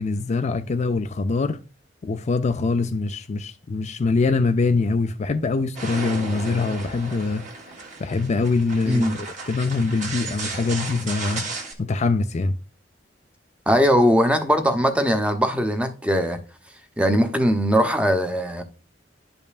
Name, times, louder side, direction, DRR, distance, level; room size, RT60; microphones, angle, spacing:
voice 1, 0.0-1.6 2.0-7.5 8.0-11.5 11.8-12.6, left 3 dB, 40° left, 0.4 m, -23 dB
sound 1, 5.7-11.7, right 3 dB, 40° right, 1.6 m, -34 dB
voice 2, 13.7-16.4 17.0-18.6, equal, 5° right, 0.8 m, -20 dB
11.0 x 5.3 x 2.4 m
head